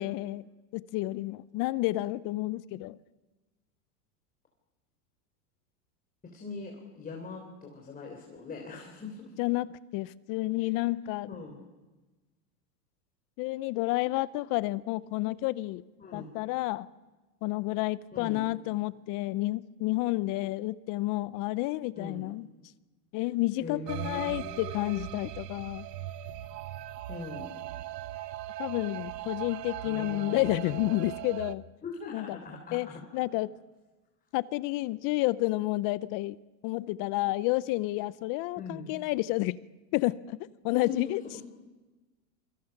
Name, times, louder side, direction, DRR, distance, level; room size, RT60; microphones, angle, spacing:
voice 1, 0.0-3.0 9.4-9.7 9.9-11.3 13.4-15.8 16.1-16.9 17.4-22.5 23.1-25.9 28.6-31.6 32.1-32.4 32.7-32.9 33.1-33.5 34.3-36.4 36.6-39.6 39.9-40.4 40.6-41.2, left 19 dB, 40° left, 18 dB, 0.7 m, -30 dB
voice 2, 6.2-9.4 10.6-10.7 11.3-11.6 16.0-16.3 18.1-18.5 22.0-22.3 23.6-25.1 27.1-27.7 29.8-30.5 30.8-31.1 31.8-33.0 38.5-38.9 40.7-41.4, left 4 dB, 15° left, 1 dB, 3.7 m, -42 dB
sound 1, 23.9-31.6, right 13 dB, 75° right, 1.2 m, -39 dB
27.5 x 24.5 x 6.0 m, 1.2 s
supercardioid pair, 125°, 49 cm